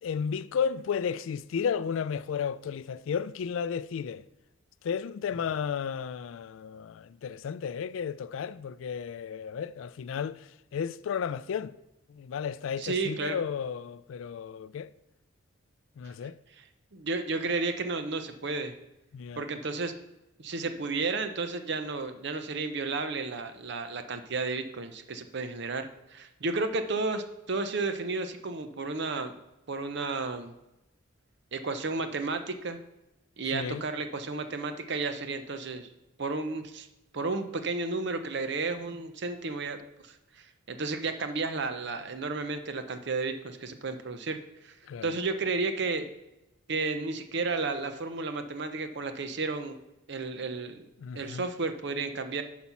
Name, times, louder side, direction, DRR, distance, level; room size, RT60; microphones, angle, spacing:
voice 1, 0.0-4.2 4.8-11.7 12.1-14.9 16.0-16.4 19.1-19.5 33.5-33.8 44.9-45.2 51.0-51.5, left 7 dB, 75° left, 0.3 m, -33 dB
voice 2, 12.8-13.4 16.6-16.7 16.9-18.7 19.4-19.9 20.4-29.4 29.7-30.5 31.5-32.8 33.4-35.9 36.2-36.9 37.1-39.8 40.1-44.7 45.0-46.1 46.7-49.8 50.1-50.9 51.1-52.4, right 3 dB, 60° right, 0.7 m, -32 dB
9.7 x 4.2 x 5.9 m
head